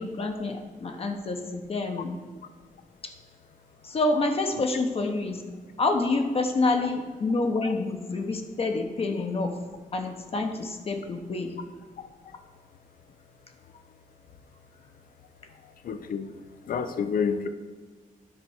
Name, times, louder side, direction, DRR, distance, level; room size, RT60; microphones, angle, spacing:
voice 1, 0.0-2.1 3.8-5.4 5.8-9.6 9.9-11.6, left 3 dB, 40° left, 4 dB, 0.9 m, -27 dB
voice 2, 15.8-16.3 16.7-17.5, left 6 dB, 80° left, 10 dB, 0.7 m, -28 dB
9.9 x 4.5 x 7.1 m, 1.5 s
wide cardioid pair, 175°, 15 cm